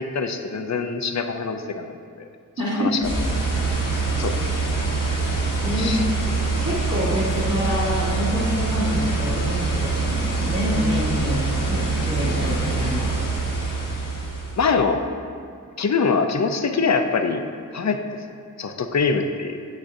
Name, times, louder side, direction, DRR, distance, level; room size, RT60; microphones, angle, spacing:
voice 1, 0.0-2.2 2.8-3.0 4.2-4.3 5.8-6.0 14.6-15.0 15.8-17.4 17.7-18.0 18.6-19.7, left 5 dB, 55° left, 6 dB, 0.5 m, -23 dB
voice 2, 2.6-2.9 4.1-4.2 5.6-6.0 6.3-13.2, left 1 dB, 50° right, -11 dB, 1.4 m, -27 dB
sound 1, 3.0-14.7, right 3 dB, 75° left, 1.4 m, -24 dB
8.5 x 6.3 x 2.6 m, 2.2 s
wide cardioid pair, 80°, 33 cm